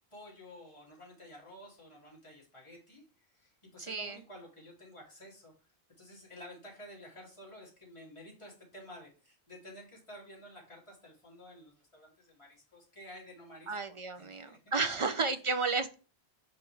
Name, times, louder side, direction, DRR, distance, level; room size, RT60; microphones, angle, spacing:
voice 1, 0.1-5.5 6.0-14.6 14.9-15.3, left 1 dB, 25° left, -4 dB, 2.9 m, -52 dB
voice 2, 3.8-4.2 13.7-15.9, right 4 dB, 50° right, 8 dB, 0.4 m, -32 dB
5.8 x 5.2 x 3.3 m, 0.36 s
omnidirectional pair, 1.1 m